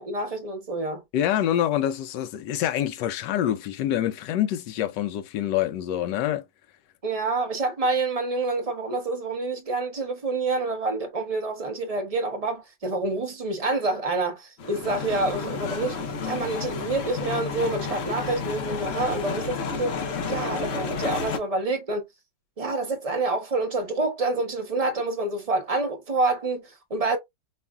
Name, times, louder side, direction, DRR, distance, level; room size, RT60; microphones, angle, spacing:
voice 1, 0.0-1.0 7.0-16.0 16.2-20.0 20.3-22.0 22.6-27.2, right 3 dB, 35° right, 0.6 m, -27 dB
voice 2, 1.1-6.4, left 11 dB, 75° left, 1.2 m, -26 dB
sound 1, 14.6-21.4, left 4 dB, 55° left, 0.9 m, -31 dB
5.5 x 2.4 x 2.3 m
omnidirectional pair, 2.0 m